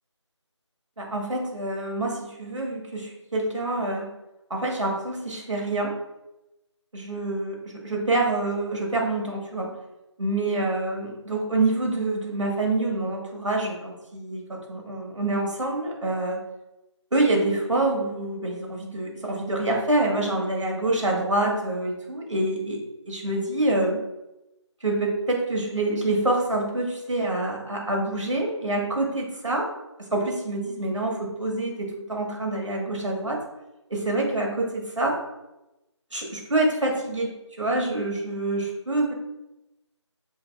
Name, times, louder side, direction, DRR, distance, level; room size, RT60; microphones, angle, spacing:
voice 1, 1.0-4.1 4.5-5.9 6.9-9.7 10.2-16.4 17.1-24.0 24.8-29.7 30.1-33.4 33.9-35.2 36.1-37.3 37.6-39.1, right 2 dB, 80° right, -1 dB, 1.6 m, -26 dB
6.6 x 3.2 x 2.4 m, 0.95 s
figure-of-eight pair, 180°, 16 cm